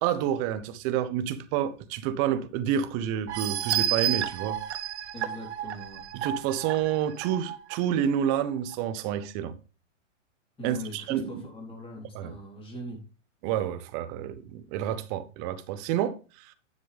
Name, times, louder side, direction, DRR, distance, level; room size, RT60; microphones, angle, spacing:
voice 1, 0.0-4.6 6.1-9.5 10.6-11.4 12.1-12.3 13.4-16.5, right 10 dB, 35° right, 1.0 m, -29 dB
sound 1, 3.3-7.8 8.2-8.3 8.7-8.8, right 11 dB, 60° right, 1.1 m, -31 dB
voice 2, 5.1-6.0 10.6-13.0, equal, 15° left, 3.9 m, -41 dB
9.9 x 7.1 x 3.4 m
hypercardioid pair, 130°, 37 cm